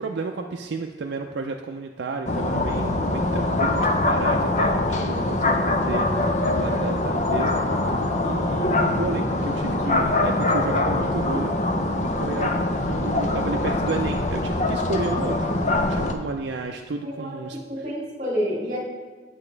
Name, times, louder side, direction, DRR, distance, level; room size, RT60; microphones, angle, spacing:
voice 1, 0.0-7.6 8.2-11.5 12.1-17.9, right 3 dB, 80° right, 3 dB, 0.4 m, -32 dB
sound 1, 2.3-16.1, left 2 dB, 40° left, 0.6 m, -23 dB
voice 2, 17.0-18.8, equal, 45° right, -2 dB, 1.8 m, -29 dB
8.7 x 7.0 x 3.2 m, 1.4 s
head